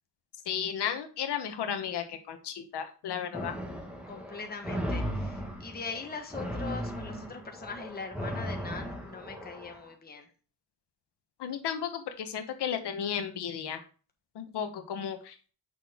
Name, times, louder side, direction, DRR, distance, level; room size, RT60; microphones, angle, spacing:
voice 1, 0.5-3.5 11.4-13.8 14.3-15.4, left 8 dB, 80° left, 7 dB, 1.1 m, -34 dB
sound 1, 3.3-9.8, equal, 5° right, 1.3 m, -37 dB
voice 2, 4.1-10.3, left 4 dB, 25° left, 4 dB, 1.2 m, -41 dB
6.5 x 6.2 x 3.6 m, 0.37 s
wide cardioid pair, 160°, 40 cm